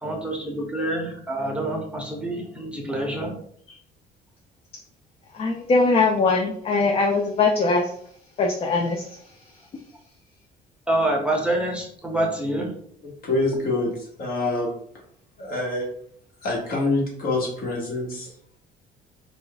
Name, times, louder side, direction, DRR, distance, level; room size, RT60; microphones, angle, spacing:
voice 1, 0.0-3.3 10.9-12.7, right 1 dB, 5° right, 0 dB, 0.7 m, -26 dB
voice 2, 5.3-7.9 8.4-9.1, left 3 dB, 35° left, 1 dB, 0.4 m, -21 dB
voice 3, 13.2-13.9 14.2-14.7 15.4-15.9 16.4-18.3, left 2 dB, 60° left, -1 dB, 1.2 m, -25 dB
2.5 x 2.3 x 3.9 m, 0.65 s
cardioid pair, 110°, 17 cm